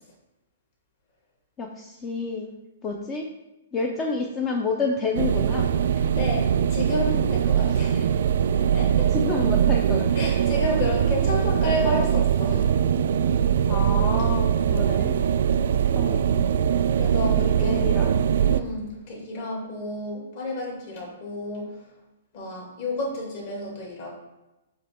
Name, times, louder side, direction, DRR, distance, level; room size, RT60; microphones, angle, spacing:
voice 1, 1.6-2.5 2.8-3.3 3.7-5.7 9.1-10.6 13.7-15.2 15.9-16.5 17.3-18.3, left 3 dB, 20° left, 1 dB, 0.5 m, -30 dB
sound 1, 5.1-18.6, right 8 dB, 65° right, 0.3 m, -22 dB
voice 2, 5.7-8.1 8.4-9.1 10.2-12.8 15.5-15.7 17.0-17.9 18.4-21.7 22.3-24.2, left 1 dB, 45° left, -3 dB, 2.2 m, -31 dB
7.4 x 3.1 x 4.3 m, 1.0 s
hypercardioid pair, 160°, 0 cm